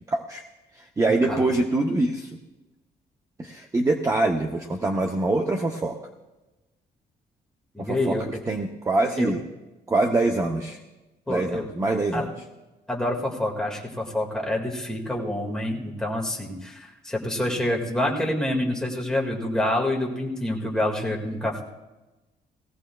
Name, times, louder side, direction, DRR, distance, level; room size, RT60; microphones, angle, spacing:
voice 1, 0.1-0.4 0.7-2.4 3.4-6.0 7.8-9.4 9.9-10.8 11.3-12.3, right 2 dB, 20° right, 3 dB, 0.7 m, -24 dB
voice 2, 7.7-8.3 9.2-9.3 11.3-11.6 12.1-12.3 12.9-21.6, left 1 dB, 5° left, -2 dB, 1.9 m, -27 dB
19.0 x 15.5 x 2.3 m, 1.1 s
cardioid pair, 155°, 17 cm